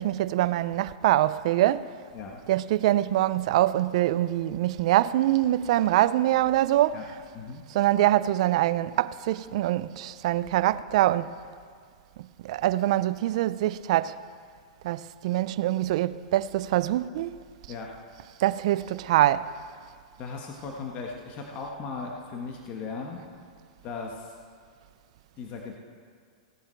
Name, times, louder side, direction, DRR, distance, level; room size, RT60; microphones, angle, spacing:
voice 1, 0.0-1.9 2.5-7.1 7.7-11.3 12.4-14.2 14.8-17.4 18.4-19.5, right 14 dB, 60° right, 0.4 m, -24 dB
voice 2, 20.2-23.2 23.8-24.3 25.4-25.8, left 4 dB, 40° left, 1.4 m, -37 dB
16.5 x 9.5 x 4.5 m
hypercardioid pair, 130°, 4 cm